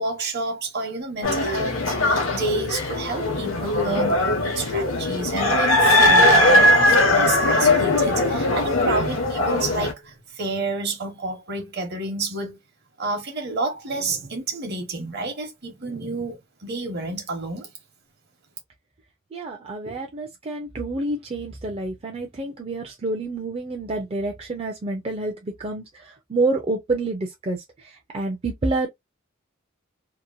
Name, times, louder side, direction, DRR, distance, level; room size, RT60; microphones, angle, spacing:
voice 1, 0.0-12.6 13.0-17.7, right 2 dB, 55° right, 1.0 m, -29 dB
sound 1, 1.2-9.9, left 1 dB, 85° left, 0.9 m, -19 dB
voice 2, 19.3-25.3 25.6-25.8 26.3-27.6 28.1-28.9, right 2 dB, 30° right, 0.5 m, -27 dB
2.9 x 2.1 x 2.5 m
head